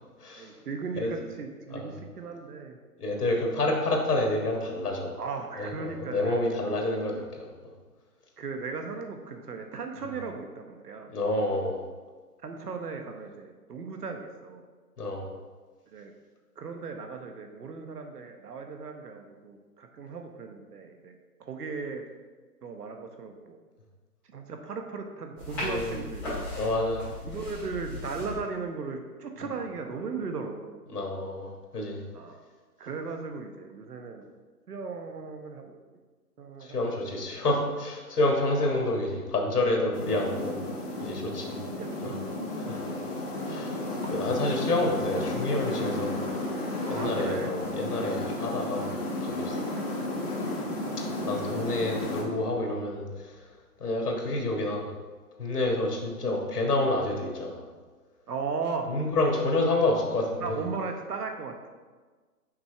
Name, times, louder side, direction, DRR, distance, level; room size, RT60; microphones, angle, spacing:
voice 1, 0.4-2.8 5.2-6.9 8.4-11.1 12.4-14.6 15.9-16.1 16.6-21.1 21.4-22.0 22.6-23.6 24.3-26.3 27.2-30.8 32.1-32.4 32.8-34.2 34.7-35.7 36.4-37.2 38.6-38.7 39.8-40.2 41.2-42.6 46.9-47.5 49.5-49.8 51.4-51.8 55.8-56.0 58.3-58.9 60.4-61.7, right 4 dB, 75° right, 4 dB, 1.0 m, -37 dB
voice 2, 3.0-5.1 5.6-7.5 11.1-11.8 15.0-15.3 25.6-25.9 26.5-27.1 30.9-32.0 36.6-40.6 41.0-41.6 42.0-42.1 42.6-42.8 43.5-43.8 44.1-46.2 46.9-48.9 49.2-49.6 51.2-53.1 53.8-54.8 55.4-57.6 58.9-60.6, left 2 dB, 75° left, 1 dB, 1.7 m, -28 dB
sound 1, 25.4-28.4, left 1 dB, 5° left, 1.8 m, -37 dB
sound 2, 39.9-52.2, left 2 dB, 40° left, 1.4 m, -33 dB
6.0 x 5.3 x 3.3 m, 1.4 s
hypercardioid pair, 170°, 47 cm